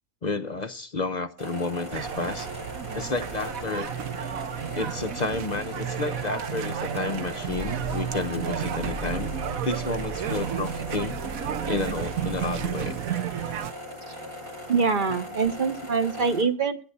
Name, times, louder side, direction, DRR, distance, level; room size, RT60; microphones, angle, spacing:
voice 1, 0.2-2.5 2.9-3.9 4.7-9.3 9.6-11.2 11.6-13.0, left 3 dB, 45° left, 0.6 m, -31 dB
sound 1, 1.4-16.4, left 1 dB, 90° right, 7.5 m, -40 dB
sound 2, 1.9-13.7, right 9 dB, 70° right, 1.2 m, -32 dB
Car / Engine starting / Idling, 2.1-2.9 3.2-4.0 4.6-4.7 4.9-5.0 5.3-5.6 6.6-12.7, left 2 dB, 10° right, 0.3 m, -41 dB
voice 2, 14.7-16.8, right 5 dB, 40° right, 1.0 m, -24 dB
11.0 x 9.7 x 6.6 m
omnidirectional pair, 1.5 m